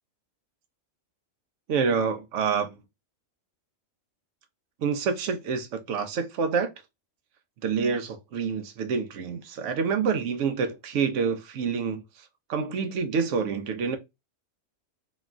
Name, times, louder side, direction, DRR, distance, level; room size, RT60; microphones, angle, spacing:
voice 1, 1.7-2.7 4.8-6.7 7.6-12.0 12.5-14.0, right 5 dB, 70° right, 0.9 m, -27 dB
3.0 x 2.2 x 2.4 m
omnidirectional pair, 1.4 m